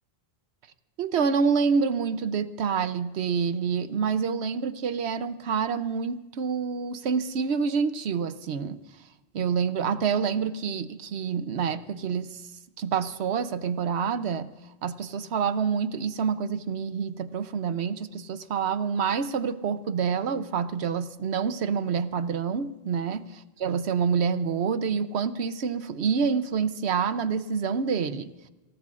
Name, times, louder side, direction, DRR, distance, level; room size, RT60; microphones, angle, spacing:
voice 1, 1.0-8.8 9.3-12.4 12.8-14.5 14.8-23.2 23.6-28.3, right 6 dB, 90° right, 12 dB, 1.0 m, -27 dB
27.0 x 17.5 x 2.5 m, 1.1 s
omnidirectional pair, 1.1 m